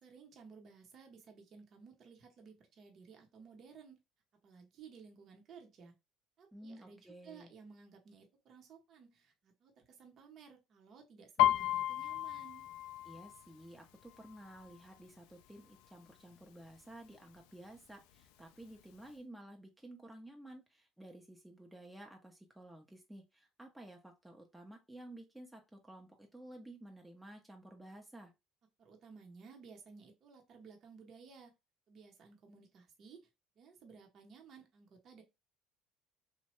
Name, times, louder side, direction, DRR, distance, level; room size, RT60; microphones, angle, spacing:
voice 1, 0.0-4.0 4.4-6.0 6.4-12.7 28.8-31.5 31.9-33.3 33.6-35.2, right 5 dB, 55° right, 0.8 m, -57 dB
voice 2, 6.5-7.5 13.0-28.3, right 1 dB, 5° right, 0.6 m, -53 dB
Piano, 11.4-15.0 15.4-15.8 16.1-16.8 17.4-17.5 17.7-18.7 19.1-19.2, left 13 dB, 85° left, 0.3 m, -34 dB
3.0 x 2.2 x 2.9 m
supercardioid pair, 85°, 0 cm